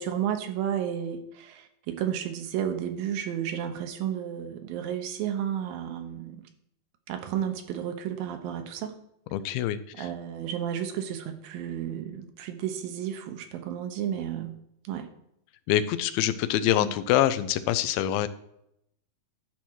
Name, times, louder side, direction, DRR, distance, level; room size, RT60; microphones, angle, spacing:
voice 1, 0.0-6.5 7.1-9.0 10.0-14.6 14.8-15.1 16.8-16.9, right 9 dB, 80° right, 7 dB, 2.6 m, -32 dB
voice 2, 9.3-10.1 15.7-18.3, left 12 dB, 85° left, 13 dB, 2.5 m, -25 dB
10.5 x 4.3 x 6.2 m, 0.76 s
omnidirectional pair, 4.2 m